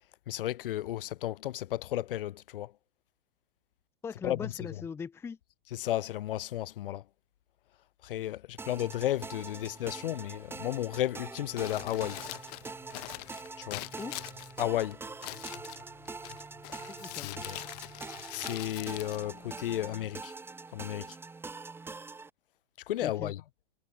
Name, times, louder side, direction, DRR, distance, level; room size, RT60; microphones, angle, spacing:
voice 1, 0.3-2.7 4.2-4.7 5.7-7.0 8.0-12.2 13.6-13.9 14.6-15.0 17.2-17.6 18.3-20.3 20.7-21.2 22.9-23.4, left 13 dB, 65° left, 2.0 m, -33 dB
voice 2, 4.0-5.4 14.0-14.2 16.9-17.3 23.0-23.3, left 6 dB, 10° left, 0.8 m, -40 dB
sound 1, 8.6-22.3, right 4 dB, 5° right, 3.0 m, -44 dB
Crumpling crinkling, 11.4-20.0, left 22 dB, 40° left, 0.9 m, -44 dB
hypercardioid pair, 150°, 30 cm